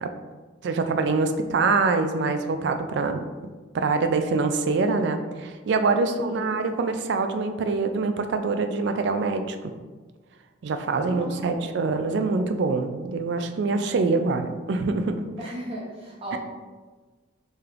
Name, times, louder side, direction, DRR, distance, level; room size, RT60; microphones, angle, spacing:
voice 1, 0.6-3.2 3.7-9.6 10.6-15.1 16.3-16.4, right 3 dB, 60° right, 7 dB, 0.3 m, -25 dB
voice 2, 6.0-6.5 10.9-11.7 15.4-16.4, right 1 dB, 30° right, -5 dB, 1.0 m, -36 dB
4.6 x 3.2 x 2.5 m, 1.3 s
head